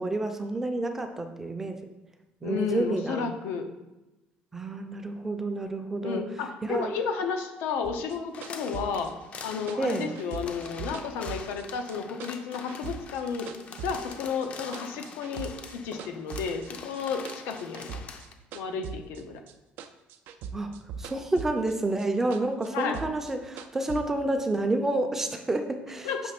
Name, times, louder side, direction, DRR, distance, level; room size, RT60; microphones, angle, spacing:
voice 1, 0.0-1.8 2.4-3.3 4.5-6.2 6.6-6.9 9.8-10.1 20.5-26.1, right 2 dB, 10° right, 6 dB, 0.5 m, -29 dB
voice 2, 2.4-3.7 6.0-9.1 9.4-13.5 13.8-18.0 18.5-19.4 22.7-23.0 26.0-26.2, left 5 dB, 90° left, 5 dB, 0.8 m, -32 dB
sound 1, 7.8-12.0 12.2-14.2 14.4-15.7 16.0-19.5 19.8-21.7 22.0-24.0, right 6 dB, 65° right, 0.4 m, -41 dB
sound 2, 8.3-18.3, left 5 dB, 35° left, 0.5 m, -44 dB
6.1 x 3.3 x 5.9 m, 1.0 s
cardioid pair, 170°, 4 cm